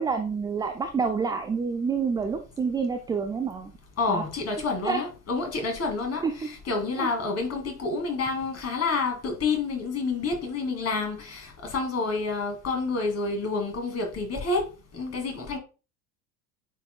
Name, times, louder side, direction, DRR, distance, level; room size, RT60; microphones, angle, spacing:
voice 1, 0.0-3.7 4.1-4.2 4.8-5.0 6.2-6.3 7.0-7.1, right 5 dB, 10° right, 0.4 m, -28 dB
voice 2, 4.0-15.6, left 3 dB, 30° left, 2.3 m, -29 dB
8.9 x 4.6 x 2.2 m
figure-of-eight pair, 70°, 49 cm